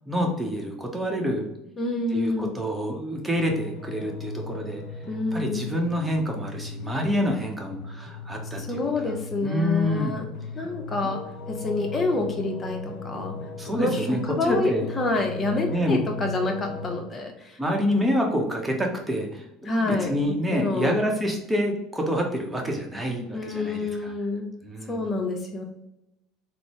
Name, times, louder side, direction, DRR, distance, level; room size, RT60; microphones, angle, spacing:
voice 1, 0.1-1.5 2.1-4.8 5.3-9.1 9.4-10.2 13.6-14.8 15.7-16.0 17.6-24.1 24.6-25.0, equal, 15° right, 1 dB, 1.0 m, -27 dB
voice 2, 1.8-2.5 5.1-5.7 8.6-10.2 10.5-11.2 11.5-13.4 13.7-17.6 19.6-20.1 20.5-21.0 23.3-24.5 24.9-25.6, left 2 dB, 30° left, 3 dB, 0.8 m, -28 dB
sound 1, 3.4-17.0, left 3 dB, 70° left, 0.4 m, -37 dB
3.8 x 2.1 x 3.1 m, 0.89 s
hypercardioid pair, 80°, 0 cm